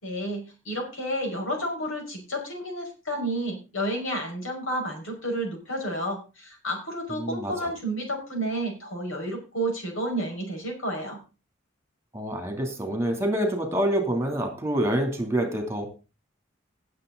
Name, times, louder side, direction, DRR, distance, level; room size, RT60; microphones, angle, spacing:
voice 1, 0.0-11.2, right 1 dB, 85° left, 2 dB, 5.5 m, -31 dB
voice 2, 7.2-7.5 12.1-15.9, right 1 dB, 15° right, 4 dB, 2.9 m, -26 dB
18.0 x 7.5 x 3.9 m, 0.32 s
head